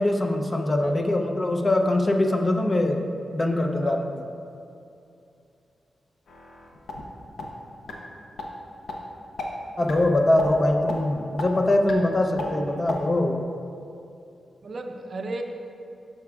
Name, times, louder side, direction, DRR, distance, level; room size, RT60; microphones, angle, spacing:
voice 1, 0.0-3.1 3.3-4.3 9.8-13.4, left 1 dB, 30° left, 3 dB, 0.6 m, -23 dB
voice 2, 3.5-4.0 12.5-12.9 14.6-15.4, right 2 dB, 50° right, 5 dB, 0.5 m, -35 dB
sound 1, 6.3-7.0 7.4-7.5 7.9-8.0 8.4-8.5 8.9-9.0 9.4-9.5 9.9-10.1 10.4-10.5 10.9-11.0 11.4-11.5 11.9-12.0 12.4-12.5 12.9-13.0, left 4 dB, 80° left, 0.8 m, -34 dB
11.5 x 5.8 x 2.4 m, 2.6 s
cardioid pair, 95°, 0 cm